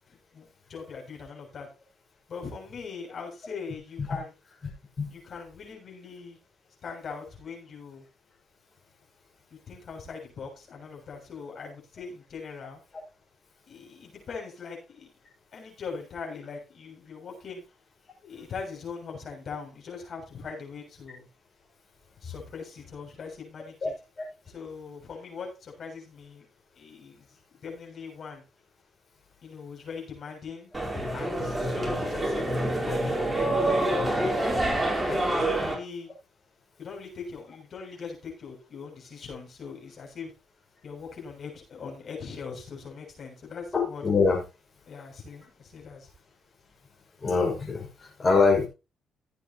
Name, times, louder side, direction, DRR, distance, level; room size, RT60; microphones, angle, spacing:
voice 1, 0.1-1.7 2.3-4.3 5.1-6.4 6.8-8.0 9.7-12.8 13.7-15.1 15.5-17.6 18.2-21.3 22.2-23.9 24.5-26.5 26.7-28.4 29.4-30.7 31.1-33.3 33.7-34.5 35.1-36.1 36.8-40.3 40.8-44.0 44.9-46.1, left 5 dB, 55° left, 1 dB, 7.2 m, -41 dB
sound 1, 30.7-35.7, right 1 dB, 10° right, 4.2 m, -27 dB
voice 2, 43.7-44.4 47.2-48.7, left 4 dB, 35° left, -2 dB, 6.2 m, -24 dB
17.5 x 8.7 x 3.0 m, 0.29 s
cardioid pair, 90°, 0 cm